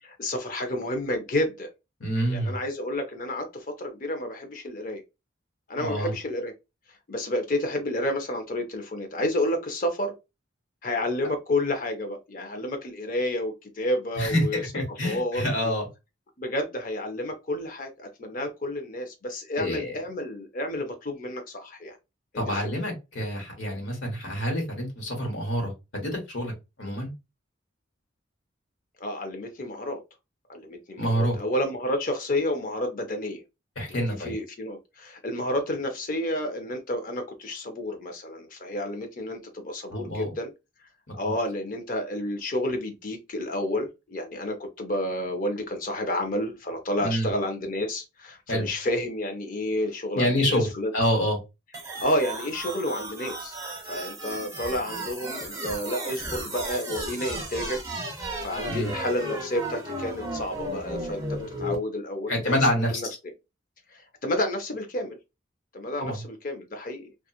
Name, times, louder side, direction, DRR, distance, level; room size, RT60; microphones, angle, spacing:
voice 1, 0.0-1.7 2.3-5.0 5.7-6.5 7.1-10.1 10.8-14.6 15.0-15.8 16.4-22.0 22.3-22.6 29.0-30.0 30.5-33.4 33.9-40.5 41.1-50.9 52.0-53.6 53.8-57.8 58.4-61.2 61.6-62.6 62.8-63.1 63.9-65.2 65.7-67.1, left 1 dB, 45° left, 0.6 m, -30 dB
voice 2, 2.0-2.6 5.7-6.1 14.2-14.4 14.7-15.9 19.6-20.0 22.3-26.5 26.8-27.1 31.0-31.4 33.8-34.3 39.9-40.3 41.1-41.3 47.0-47.3 48.5-48.7 50.1-50.7 50.9-51.4 58.7-58.9 62.3-63.2 66.0-66.2, equal, 80° left, 1.2 m, -27 dB
sound 1, 51.7-61.7, right 1 dB, 15° right, 0.7 m, -34 dB
2.8 x 2.4 x 2.3 m
head